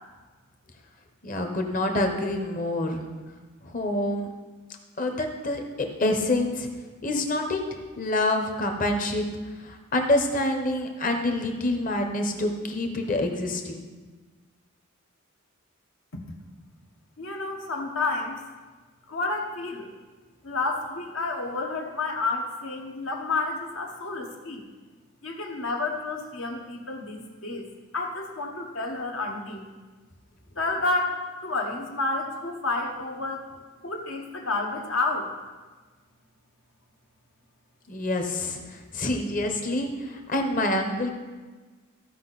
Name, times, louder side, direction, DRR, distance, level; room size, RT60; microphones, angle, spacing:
voice 1, 1.2-3.0 3.6-4.3 5.0-6.7 7.0-9.2 9.7-13.8 37.9-41.1, left 1 dB, 40° left, 4 dB, 1.1 m, -27 dB
voice 2, 17.2-18.4 19.1-19.9 20.4-24.6 25.2-27.7 27.9-29.6 30.6-33.4 33.8-35.3, left 3 dB, 65° left, 2 dB, 1.3 m, -30 dB
15.0 x 5.3 x 4.1 m, 1.3 s
head